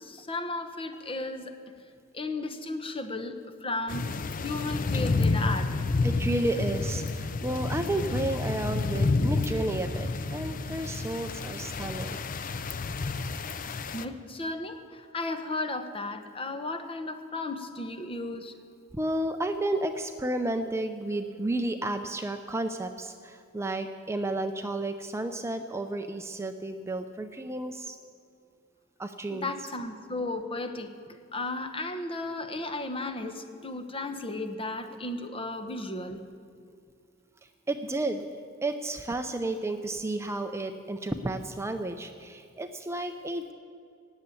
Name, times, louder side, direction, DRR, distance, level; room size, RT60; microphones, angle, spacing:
voice 1, 0.0-1.5 2.1-4.1 4.4-5.9 13.9-18.5 29.3-30.9 31.3-36.2, left 2 dB, 30° left, 7 dB, 0.9 m, -34 dB
sound 1, 3.9-14.0, left 3 dB, 45° left, 0.5 m, -30 dB
voice 2, 6.0-12.2 18.9-28.0 29.0-29.5 37.7-38.2 38.6-43.5, right 2 dB, 15° right, 7 dB, 0.5 m, -32 dB
18.0 x 6.9 x 8.4 m, 2.3 s
head